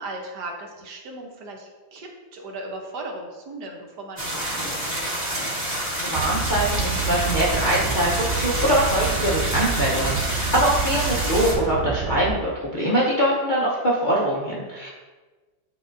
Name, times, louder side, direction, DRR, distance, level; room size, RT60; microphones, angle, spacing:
voice 1, 0.0-5.0, right 2 dB, 65° right, 1 dB, 1.4 m, -37 dB
sound 1, 4.2-11.5, right 1 dB, 25° right, 1.4 m, -28 dB
voice 2, 6.0-14.9, right 1 dB, 40° left, -6 dB, 0.7 m, -23 dB
sound 2, 6.1-12.3, right 6 dB, 85° right, 1.4 m, -28 dB
9.8 x 3.8 x 2.6 m, 1.3 s
omnidirectional pair, 2.0 m